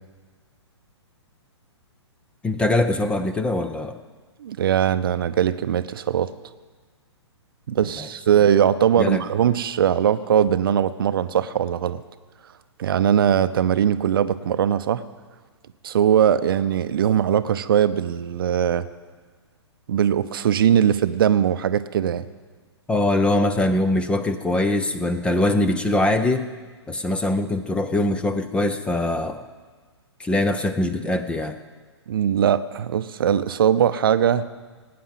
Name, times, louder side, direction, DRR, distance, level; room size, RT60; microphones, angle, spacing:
voice 1, 2.4-4.0 8.0-8.1 9.0-9.2 22.9-26.5 26.9-29.4 30.2-31.6, left 2 dB, 5° left, 10 dB, 0.5 m, -22 dB
voice 2, 4.4-6.3 7.7-12.0 12.8-15.0 15.8-18.9 19.9-22.3 32.1-34.5, right 9 dB, 50° right, 13 dB, 0.7 m, -20 dB
18.0 x 9.5 x 7.6 m, 1.4 s
figure-of-eight pair, 120°, 15 cm